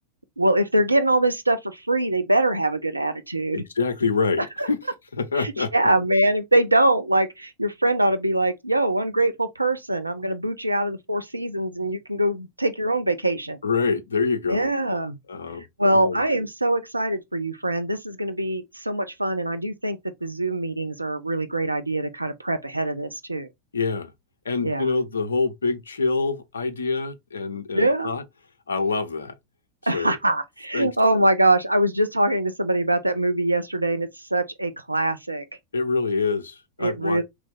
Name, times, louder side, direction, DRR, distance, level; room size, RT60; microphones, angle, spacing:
voice 1, 0.4-3.6 4.6-4.7 5.4-13.6 14.5-15.2 15.8-23.5 24.6-24.9 27.7-28.2 29.9-35.4 36.8-37.2, right 1 dB, 85° right, 0.4 m, -23 dB
voice 2, 3.5-4.8 5.1-5.7 13.6-14.7 15.3-15.6 15.9-16.2 23.7-24.1 24.4-28.2 28.7-29.3 29.9-30.2 30.7-30.9 35.7-37.2, left 4 dB, 70° left, 0.5 m, -26 dB
3.1 x 2.5 x 3.5 m
figure-of-eight pair, 90°, 0 cm